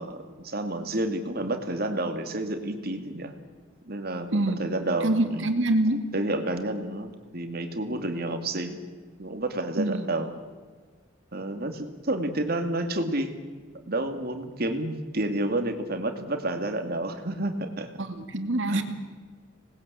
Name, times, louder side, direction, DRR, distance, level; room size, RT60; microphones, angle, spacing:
voice 1, 0.0-3.3 3.9-5.5 6.1-8.8 9.2-10.3 11.3-13.4 13.9-17.9 18.7-18.8, right 1 dB, 50° right, 7 dB, 2.4 m, -30 dB
voice 2, 4.3-4.6 5.0-6.0 9.8-10.1 18.0-18.8, right 1 dB, 70° right, 7 dB, 2.4 m, -25 dB
26.0 x 20.0 x 8.5 m, 1.5 s
head